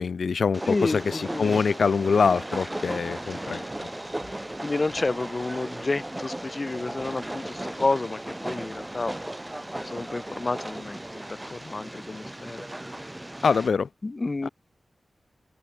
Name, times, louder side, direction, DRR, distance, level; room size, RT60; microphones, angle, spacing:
voice 1, 0.0-3.6 13.4-13.9, left 5 dB, 75° left, 0.5 m, -24 dB
Train, 0.5-13.7, right 1 dB, 15° right, 0.6 m, -36 dB
voice 2, 0.7-1.6 4.6-9.2 9.6-12.9 14.0-14.5, left 3 dB, 35° left, 1.3 m, -30 dB
wide cardioid pair, 135°, 0 cm